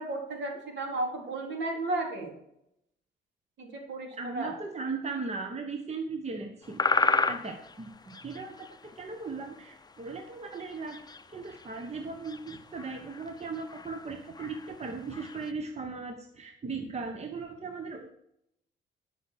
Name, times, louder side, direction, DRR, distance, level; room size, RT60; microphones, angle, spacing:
voice 1, 0.0-2.4 3.6-4.6, right 2 dB, 65° right, 1 dB, 4.0 m, -34 dB
voice 2, 4.1-11.0 11.3-18.1, right 4 dB, 35° right, 5 dB, 1.3 m, -38 dB
sound 1, 6.7-9.9 10.2-10.3 10.5-15.5, left 3 dB, 20° left, 0.7 m, -32 dB
11.5 x 6.0 x 6.4 m, 0.77 s
cardioid pair, 90°, 20 cm